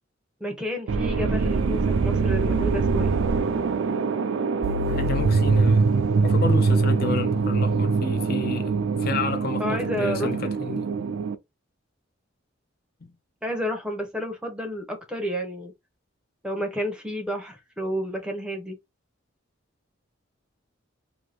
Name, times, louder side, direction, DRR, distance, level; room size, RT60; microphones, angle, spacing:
voice 1, 0.4-3.1 9.6-10.8 13.4-15.7 16.4-18.8, equal, 5° right, 0.6 m, -31 dB
sound 1, 0.9-11.3, right 4 dB, 70° right, 0.4 m, -23 dB
voice 2, 4.9-5.9 6.2-10.9 13.0-13.1, left 4 dB, 50° left, 0.5 m, -31 dB
2.6 x 2.6 x 3.3 m
head